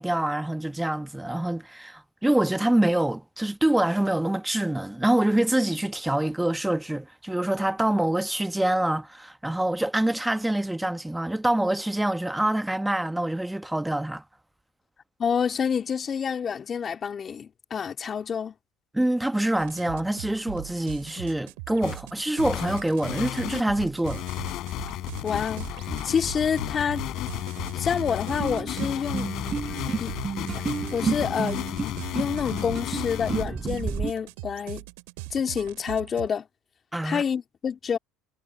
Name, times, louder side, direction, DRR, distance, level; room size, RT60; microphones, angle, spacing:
voice 1, 0.0-14.2 18.9-24.2 36.9-37.2, right 1 dB, 5° right, 1.2 m, -25 dB
voice 2, 15.2-18.5 25.2-25.7 26.0-27.0 27.7-29.3 30.0-30.1 30.9-31.6 32.2-34.8 35.3-36.5 37.0-38.0, left 7 dB, 35° left, 2.6 m, -28 dB
sound 1, 19.6-36.3, right 29 dB, 85° right, 4.9 m, -41 dB
sound 2, 21.8-22.0 22.4-33.4, left 15 dB, 60° left, 5.1 m, -33 dB
sound 3, 28.4-34.1, right 6 dB, 30° right, 4.5 m, -32 dB
supercardioid pair, 90°, 0 cm